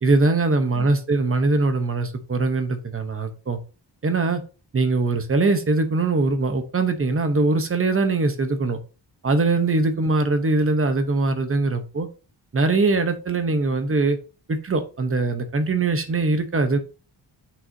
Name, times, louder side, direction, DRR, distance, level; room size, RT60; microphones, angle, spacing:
voice 1, 0.0-3.6 4.0-4.4 4.7-8.8 9.2-12.1 12.5-14.2 14.5-16.8, right 3 dB, 30° right, 8 dB, 0.9 m, -22 dB
8.0 x 6.2 x 2.7 m, 0.33 s
wide cardioid pair, 180°, 44 cm